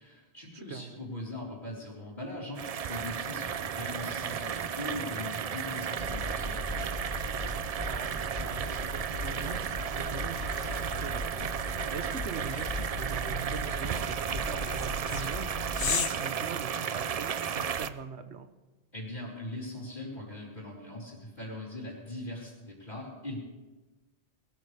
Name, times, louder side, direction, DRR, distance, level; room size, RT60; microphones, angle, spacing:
voice 1, 0.0-7.0 18.9-23.5, left 1 dB, 45° left, -11 dB, 4.2 m, -41 dB
voice 2, 0.5-1.0 3.9-4.0 7.9-18.5, right 6 dB, 85° right, 9 dB, 1.2 m, -41 dB
sound 1, 2.6-17.9, right 7 dB, 50° right, 0.5 m, -34 dB
sound 2, 6.0-15.9, left 1 dB, 10° right, 6.1 m, -39 dB
sound 3, 10.4-17.3, left 7 dB, 80° left, 1.1 m, -39 dB
20.5 x 14.0 x 3.3 m, 1.2 s
omnidirectional pair, 1.1 m